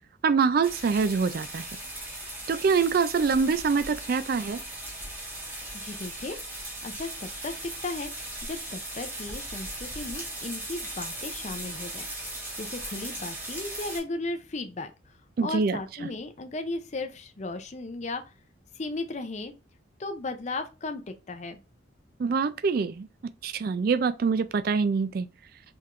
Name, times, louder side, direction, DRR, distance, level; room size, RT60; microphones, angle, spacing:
voice 1, 0.2-1.7 2.5-4.6 15.4-15.8 22.2-23.1 23.4-25.3, right 5 dB, 50° right, 0.3 m, -25 dB
sound 1, 0.6-14.0, right 1 dB, 10° right, 1.6 m, -38 dB
voice 2, 5.7-8.1 8.4-18.3 18.7-19.5 20.0-21.6, left 2 dB, 35° left, 0.5 m, -36 dB
4.6 x 3.5 x 2.5 m
head